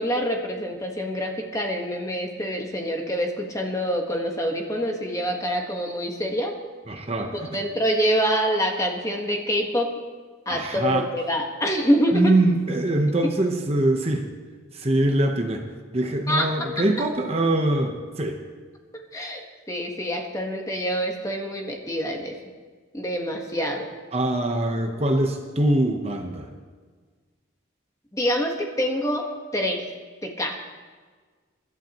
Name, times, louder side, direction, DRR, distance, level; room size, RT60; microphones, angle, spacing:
voice 1, 0.0-6.5 7.3-9.9 10.4-12.2 13.2-13.3 16.3-16.5 19.1-19.4 19.7-22.4 22.9-23.9 28.1-29.3 29.5-29.9 30.2-30.5, equal, 15° left, 2 dB, 1.4 m, -26 dB
voice 2, 6.9-7.6 10.5-11.1 12.1-14.3 14.7-15.7 15.9-18.4 24.1-26.5, right 1 dB, 30° right, 4 dB, 0.9 m, -23 dB
24.5 x 12.0 x 3.0 m, 1.5 s
head